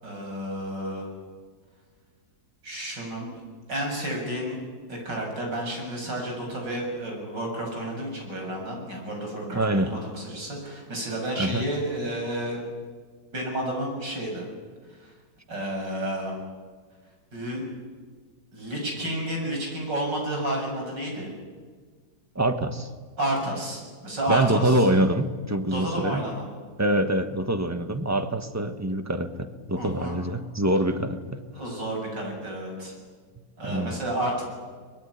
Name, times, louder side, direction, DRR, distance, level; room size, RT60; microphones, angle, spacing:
voice 1, 0.0-1.1 2.6-3.3 3.7-4.6 4.9-12.6 13.3-14.4 15.0-15.1 15.5-16.4 17.3-17.7 18.5-21.3 23.2-24.9 25.7-26.5 29.8-30.2 31.5-33.0 33.6-34.4, right 1 dB, 75° right, 1 dB, 7.8 m, -31 dB
voice 2, 9.5-10.0 11.4-11.6 22.3-22.9 24.3-26.2 26.8-31.4 33.6-34.0, right 1 dB, 10° right, 9 dB, 1.2 m, -25 dB
23.0 x 22.0 x 9.9 m, 1.5 s
omnidirectional pair, 1.9 m